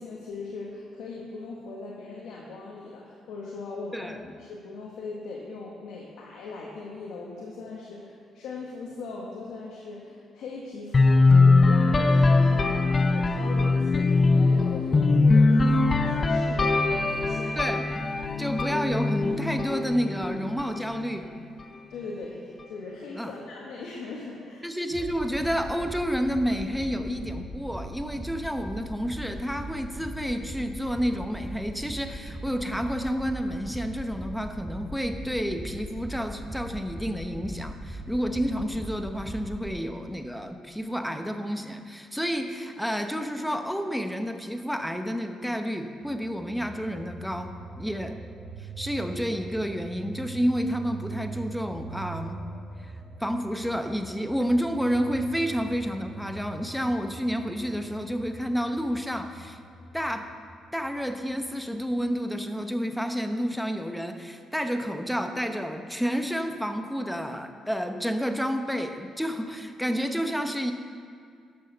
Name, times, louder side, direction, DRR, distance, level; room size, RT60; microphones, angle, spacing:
voice 1, 0.0-17.6 21.9-24.6, left 3 dB, 80° left, -3 dB, 1.3 m, -39 dB
sound 1, 10.9-20.8, left 3 dB, 35° left, 0.7 m, -21 dB
voice 2, 17.6-18.0 18.4-21.3 23.2-23.3 24.6-47.5 47.8-48.1 48.6-52.4 52.8-52.9 53.2-59.6 59.9-60.3 60.7-70.7, equal, ahead, 6 dB, 0.8 m, -30 dB
sound 2, 24.9-39.7, right 1 dB, 30° right, 2.2 m, -39 dB
sound 3, 46.0-62.1, right 4 dB, 45° right, 2.6 m, -43 dB
11.0 x 6.3 x 6.7 m, 2.3 s
cardioid pair, 90°, 0 cm